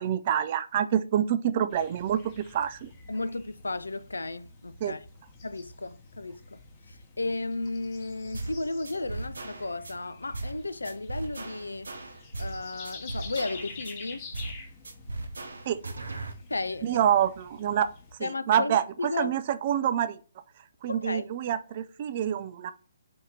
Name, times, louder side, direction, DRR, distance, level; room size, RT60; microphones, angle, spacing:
voice 1, 0.0-2.9 4.8-4.9 15.7-15.8 16.8-17.9 18.2-20.2 20.8-22.7, right 9 dB, 35° right, 0.4 m, -27 dB
sound 1, 1.7-18.1, left 3 dB, 30° left, 0.9 m, -48 dB
voice 2, 3.1-5.0 5.4-6.6 7.2-11.9 12.4-14.3 16.5-17.0 18.2-19.3 20.9-21.3, left 2 dB, 70° left, 0.3 m, -34 dB
sound 2, 8.3-8.6 8.8-9.9 10.3-10.6 10.8-12.6 12.8-13.9 14.3-14.6 14.8-16.3, right 2 dB, 70° right, 0.7 m, -37 dB
4.6 x 2.7 x 3.6 m
figure-of-eight pair, 135°, 0 cm